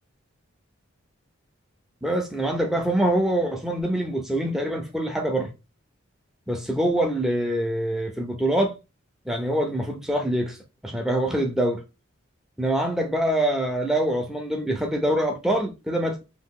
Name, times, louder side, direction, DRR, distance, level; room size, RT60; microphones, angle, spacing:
voice 1, 2.0-5.5 6.5-8.7 9.3-10.6 10.8-11.8 12.6-16.2, right 1 dB, ahead, 0.5 m, -24 dB
2.8 x 2.4 x 3.6 m
head